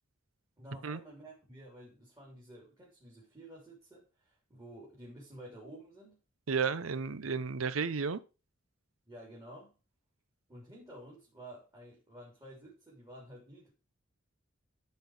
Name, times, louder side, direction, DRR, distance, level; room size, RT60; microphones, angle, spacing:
voice 1, 0.6-6.1 9.1-9.8 10.5-13.7, right 1 dB, 15° right, 3.3 m, -51 dB
voice 2, 6.5-8.2, right 5 dB, 85° right, 0.7 m, -32 dB
13.0 x 4.6 x 4.9 m
head